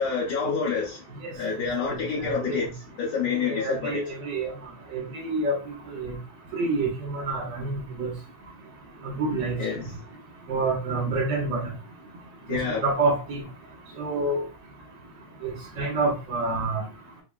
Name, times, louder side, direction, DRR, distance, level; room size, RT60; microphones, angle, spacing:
voice 1, 0.0-1.0 1.3-2.7 3.0-4.1 9.6-10.0 12.5-12.8, left 5 dB, 70° left, 2.0 m, -28 dB
voice 2, 1.8-2.7 3.4-4.5 4.9-5.6 5.9-6.2 6.5-8.1 9.0-9.6 10.5-11.6 12.5-13.4 14.0-14.4 15.4-16.8, right 3 dB, 55° right, 0.8 m, -28 dB
5.9 x 2.0 x 2.4 m
omnidirectional pair, 4.1 m